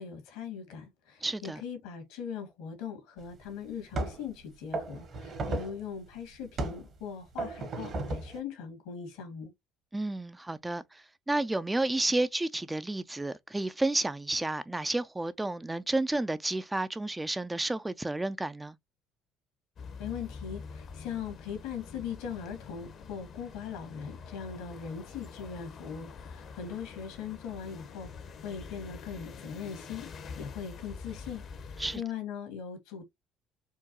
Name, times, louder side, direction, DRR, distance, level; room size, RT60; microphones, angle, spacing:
voice 1, 0.0-9.5 20.0-30.1 30.4-31.4 31.9-33.0, left 7 dB, 80° left, 1.7 m, -40 dB
voice 2, 1.2-1.6 9.9-18.8 31.8-32.0, right 2 dB, 15° right, 0.4 m, -31 dB
sound 1, 3.2-3.3 3.9-4.3 4.7-5.8 6.6-6.9 7.4-8.4, right 2 dB, 50° right, 1.2 m, -34 dB
sound 2, 19.8-32.0, left 5 dB, 55° left, 0.8 m, -46 dB
4.6 x 2.3 x 2.8 m
hypercardioid pair, 70°, 0 cm